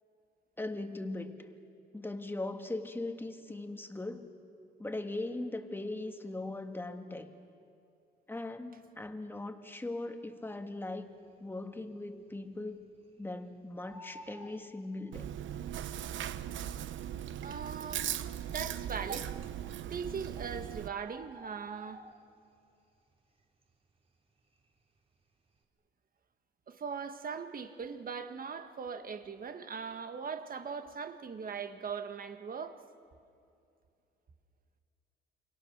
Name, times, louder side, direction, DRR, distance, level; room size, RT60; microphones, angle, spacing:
voice 1, 0.6-1.5 1.9-4.3 4.8-7.3 8.3-11.1 11.4-12.9 13.2-15.3, left 2 dB, 10° left, 6 dB, 1.9 m, -39 dB
Bird, 11.0-11.5 11.9-12.0 12.2-13.4 13.7-15.5 16.4-16.5 17.1-17.2 17.4-17.5 18.2-18.6 19.6-19.7 20.0-20.1 20.4-22.6 23.0-23.3 23.6-25.0 25.3-25.6, right 2 dB, 30° right, 3.2 m, -52 dB
Chewing mastication, 15.1-20.9, right 10 dB, 75° right, 0.9 m, -39 dB
voice 2, 17.4-18.1 18.5-19.3 19.9-22.0 26.7-32.8, right 6 dB, 45° right, 8 dB, 1.7 m, -40 dB
28.5 x 24.0 x 6.7 m, 2.6 s
cardioid pair, 90°, 20 cm